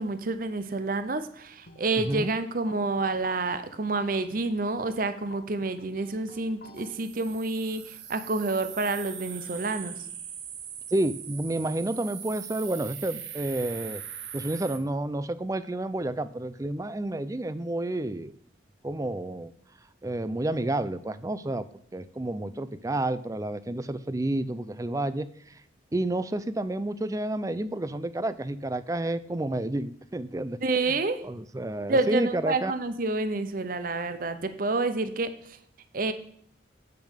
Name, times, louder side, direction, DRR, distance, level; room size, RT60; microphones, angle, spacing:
voice 1, 0.0-10.0 30.6-31.2 31.9-35.6 35.9-36.1, right 3 dB, 50° right, 11 dB, 0.7 m, -29 dB
sound 1, 1.7-6.9, left 2 dB, 55° left, 1.2 m, -52 dB
voice 2, 2.0-2.3 10.9-14.0 14.3-18.3 18.8-19.5 20.0-21.7 21.9-25.6 25.9-30.6 30.9-31.0 31.2-32.7, right 1 dB, 20° right, 14 dB, 0.4 m, -30 dB
sound 2, 6.7-14.8, right 9 dB, 65° right, 1.2 m, -41 dB
8.3 x 6.8 x 6.4 m, 0.65 s
head